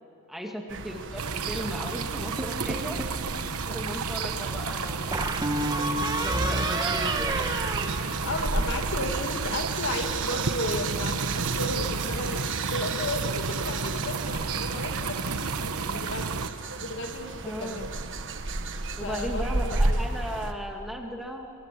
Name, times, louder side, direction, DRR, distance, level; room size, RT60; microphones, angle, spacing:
voice 1, 0.3-3.0 3.7-5.4 6.2-7.5 17.4-17.9 18.9-21.5, equal, ahead, 1 dB, 2.1 m, -36 dB
sound 1, 0.7-20.5, right 3 dB, 55° right, 1.4 m, -34 dB
sound 2, 1.2-16.5, right 4 dB, 70° right, 1.1 m, -31 dB
sound 3, 2.4-3.2 5.1-8.7, right 1 dB, 20° right, 1.4 m, -30 dB
voice 2, 8.2-16.3 16.8-17.9 19.0-20.0, left 2 dB, 55° left, 4 dB, 2.4 m, -34 dB
26.5 x 24.5 x 7.7 m, 2.7 s
head